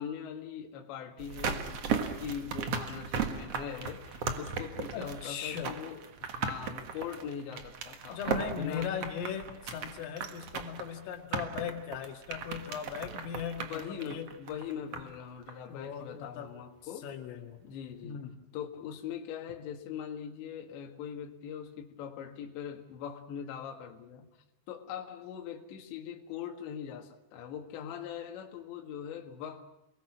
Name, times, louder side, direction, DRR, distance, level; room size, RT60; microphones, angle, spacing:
voice 1, 0.0-8.9 13.7-17.1 17.6-18.2 18.5-24.3 24.7-29.7, left 8 dB, 70° left, 2 dB, 4.1 m, -41 dB
sound 1, 1.2-15.2 15.5-15.6, right 6 dB, 85° right, 1.4 m, -37 dB
voice 2, 4.9-5.8 8.1-14.3 14.9-15.0 15.7-16.5 17.0-17.7 18.0-18.4, left 8 dB, 85° left, 3 dB, 4.7 m, -38 dB
29.0 x 21.5 x 6.1 m, 0.83 s
omnidirectional pair, 5.7 m